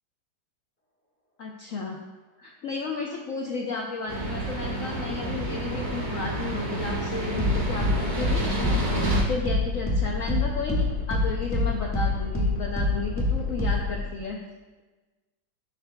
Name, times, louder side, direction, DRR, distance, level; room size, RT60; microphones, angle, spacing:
voice 1, 1.4-2.0 2.4-7.9 8.1-8.8 9.3-14.4, left 4 dB, 70° left, 0 dB, 0.8 m, -33 dB
sound 1, 4.1-9.2, right 2 dB, 35° right, 0.9 m, -29 dB
sound 2, 5.4-14.0, left 2 dB, 10° left, 1.1 m, -27 dB
11.0 x 6.3 x 2.2 m, 1.2 s
omnidirectional pair, 2.0 m